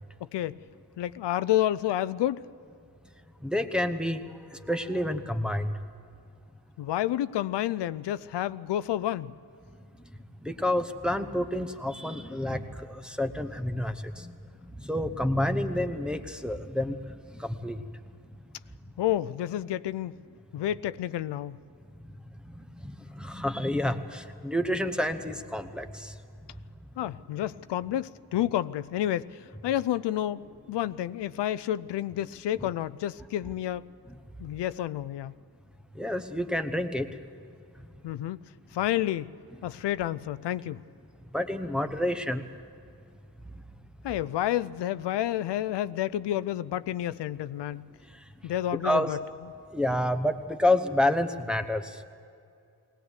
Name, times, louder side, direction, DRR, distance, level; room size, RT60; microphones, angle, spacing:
voice 1, 1.0-2.4 6.8-9.3 19.0-20.1 20.5-21.6 27.0-33.8 34.4-35.3 38.0-38.4 38.7-39.3 39.6-40.8 44.0-47.9 48.4-49.2, left 12 dB, 80° left, 15 dB, 0.6 m, -30 dB
voice 2, 3.4-5.7 10.4-14.3 14.8-17.0 17.3-17.8 22.8-26.1 36.0-37.1 41.3-42.4 48.8-49.1 49.7-51.8, left 1 dB, ahead, 6 dB, 0.9 m, -29 dB
21.0 x 18.5 x 8.2 m, 2.5 s
wide cardioid pair, 150°, 41 cm